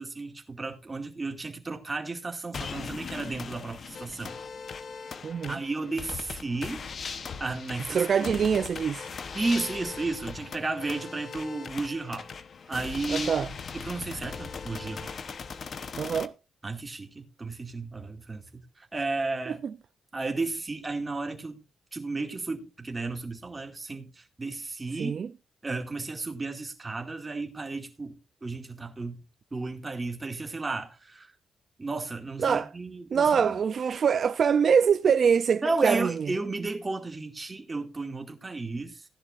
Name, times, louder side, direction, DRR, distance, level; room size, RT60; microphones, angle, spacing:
voice 1, 0.0-4.4 5.5-6.8 7.4-8.3 9.3-12.2 12.7-13.4 13.8-15.1 16.6-19.6 20.1-21.6 21.9-25.2 25.6-29.2 29.5-31.3 31.8-33.5 35.6-39.0, right 3 dB, 20° right, 2.3 m, -33 dB
sound 1, 2.5-16.3, left 5 dB, 45° left, 1.0 m, -39 dB
voice 2, 5.2-5.6 7.9-9.1 13.1-13.5 16.0-16.3 19.5-19.7 25.0-25.3 32.4-32.7 33.1-36.3, right 7 dB, 50° right, 0.5 m, -24 dB
16.0 x 10.5 x 2.5 m
cardioid pair, 115°, 0 cm